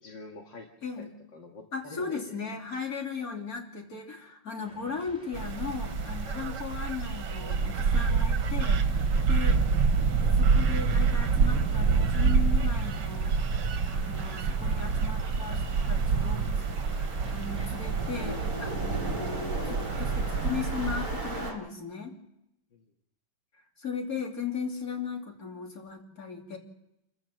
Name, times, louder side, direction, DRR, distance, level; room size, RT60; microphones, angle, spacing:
voice 1, 0.0-0.7 1.0-2.4 22.7-22.8, left 3 dB, 70° left, 1 dB, 2.6 m, -46 dB
voice 2, 0.8-1.1 1.7-9.6 10.4-13.3 13.9-16.5 16.8-22.2 23.8-26.6, left 5 dB, 45° left, 2 dB, 3.5 m, -37 dB
sound 1, 4.6-20.6, right 1 dB, 5° right, 4.0 m, -52 dB
sound 2, 5.3-21.5, right 5 dB, 65° right, 1.8 m, -27 dB
sound 3, 13.7-21.5, equal, 15° left, 5.9 m, -40 dB
28.0 x 14.5 x 7.7 m, 0.84 s
omnidirectional pair, 2.1 m